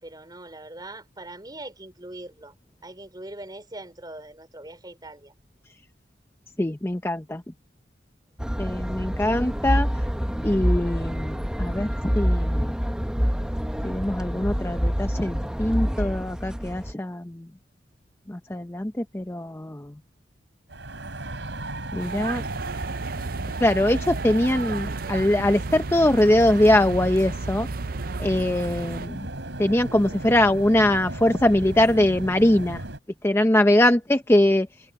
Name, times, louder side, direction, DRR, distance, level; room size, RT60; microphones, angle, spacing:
voice 1, 0.0-2.5 2.8-5.3, right 1 dB, 25° right, 4.6 m, -41 dB
voice 2, 6.6-7.4 8.6-9.9 10.4-11.9 12.1-12.7 13.8-17.5 18.3-19.9 21.9-22.4 23.6-27.7 28.2-29.3 29.6-32.8 33.2-34.7, left 1 dB, 15° left, 0.7 m, -22 dB
sound 1, 8.4-16.9, equal, 5° right, 1.0 m, -26 dB
sound 2, 20.7-33.0, right 1 dB, 90° right, 4.0 m, -35 dB
sound 3, 22.0-29.1, right 4 dB, 55° right, 0.5 m, -34 dB
head